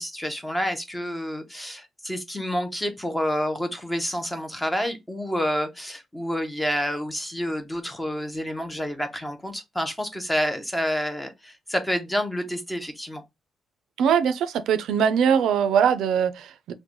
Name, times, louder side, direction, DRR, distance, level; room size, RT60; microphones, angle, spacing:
voice 1, 0.0-13.2, equal, 5° left, 0.5 m, -28 dB
voice 2, 14.0-16.7, right 7 dB, 85° right, 0.4 m, -21 dB
3.7 x 2.1 x 2.9 m
cardioid pair, 175°, 0 cm